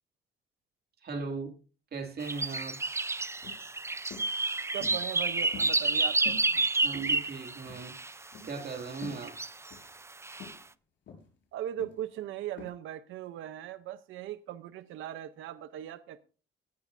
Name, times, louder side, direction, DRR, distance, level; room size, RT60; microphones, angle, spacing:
voice 1, 1.0-1.5 1.9-2.8 6.8-9.4, right 4 dB, 50° right, 2.5 m, -38 dB
sound 1, 2.2-8.1 9.0-9.7 10.2-10.5, right 3 dB, 15° right, 0.6 m, -30 dB
sound 2, 3.4-3.7 4.1-4.3 4.8-5.1 5.5-6.0 6.3-6.5 6.9-7.4 7.7-7.9 8.3-8.6 9.0-9.3 9.7-9.9 10.4-10.6 11.1-11.3 11.8-12.1 12.6-12.7, left 4 dB, 70° left, 5.6 m, -46 dB
voice 2, 4.7-6.7 11.5-16.2, right 11 dB, 85° right, 0.8 m, -39 dB
18.0 x 11.5 x 2.7 m
cardioid pair, 90°, 20 cm